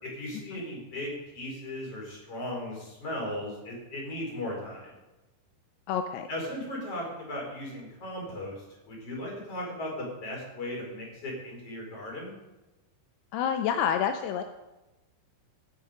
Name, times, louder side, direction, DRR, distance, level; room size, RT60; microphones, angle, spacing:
voice 1, 0.0-4.9 6.3-8.6 8.9-12.3, left 1 dB, 35° left, -2 dB, 5.4 m, -37 dB
voice 2, 5.9-6.3 13.3-14.4, left 8 dB, 85° left, 7 dB, 2.6 m, -28 dB
15.5 x 9.7 x 5.1 m, 1.1 s
omnidirectional pair, 4.7 m